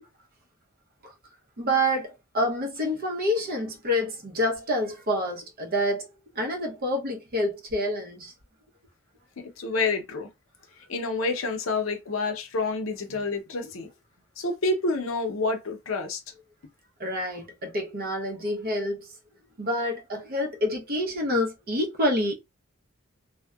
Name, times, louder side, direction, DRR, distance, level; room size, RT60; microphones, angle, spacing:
voice 1, 1.6-8.3 17.0-19.1 19.6-22.3, equal, 45° right, 0.7 m, -28 dB
voice 2, 9.4-10.3 10.9-13.9 14.4-16.2, left 3 dB, 70° left, 0.6 m, -28 dB
2.6 x 2.1 x 2.2 m
head